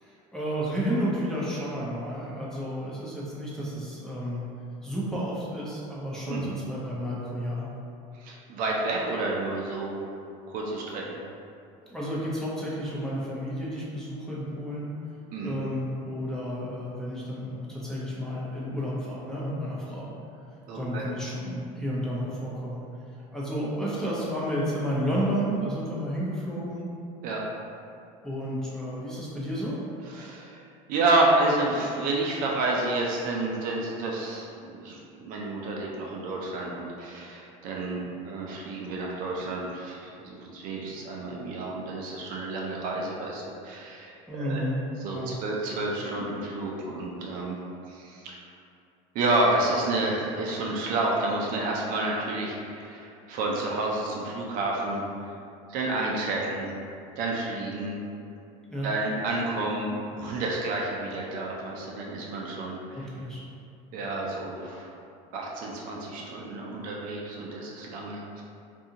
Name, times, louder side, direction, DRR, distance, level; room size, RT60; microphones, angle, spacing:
voice 1, 0.0-4.5 4.8-7.7 11.9-14.9 15.4-20.1 20.7-22.8 23.3-26.9 28.2-29.8 44.3-44.8 45.1-45.3 58.7-58.9 62.9-63.4, equal, 5° left, -7 dB, 0.6 m, -31 dB
voice 2, 6.3-6.6 8.2-10.1 10.5-11.2 15.3-15.6 20.7-21.0 27.2-27.4 30.1-30.6 30.9-44.6 45.0-47.6 47.9-48.4 49.1-55.0 55.7-56.7 57.1-58.0 58.8-63.1 63.9-64.9 65.3-68.4, right 2 dB, 55° right, -2 dB, 0.5 m, -30 dB
2.6 x 2.4 x 2.7 m, 2.5 s
supercardioid pair, 115°, 17 cm